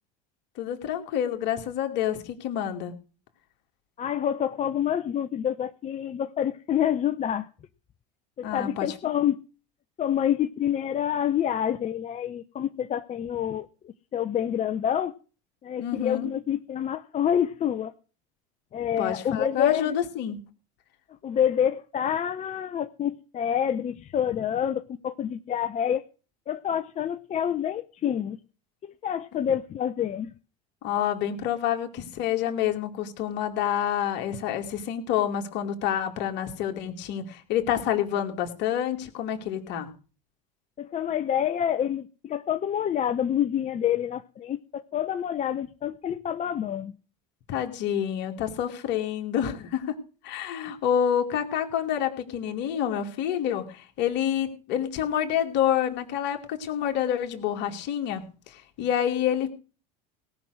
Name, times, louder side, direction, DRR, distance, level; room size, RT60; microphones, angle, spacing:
voice 1, 0.6-2.9 8.4-9.1 15.8-16.3 19.0-20.4 30.8-39.9 47.5-50.0 50.2-59.5, left 10 dB, 60° left, 4 dB, 2.5 m, -28 dB
voice 2, 4.0-7.5 8.4-9.4 10.0-15.1 15.6-17.9 18.7-19.9 21.2-26.0 26.5-28.4 29.0-30.3 40.8-46.9, left 9 dB, 35° left, 8 dB, 0.8 m, -27 dB
18.0 x 6.1 x 6.5 m, 0.36 s
hypercardioid pair, 90°, 21 cm